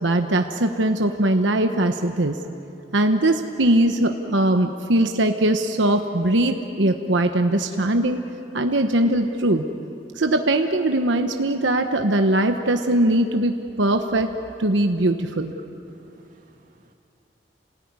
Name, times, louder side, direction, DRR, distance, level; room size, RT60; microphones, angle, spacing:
voice 1, 0.0-2.4 2.9-8.2 8.5-9.6 10.2-14.3 14.6-15.5, right 1 dB, 85° right, 5 dB, 1.2 m, -21 dB
voice 2, 15.9-16.9, right 1 dB, 45° right, 2 dB, 2.5 m, -56 dB
28.5 x 19.0 x 9.7 m, 2.8 s
head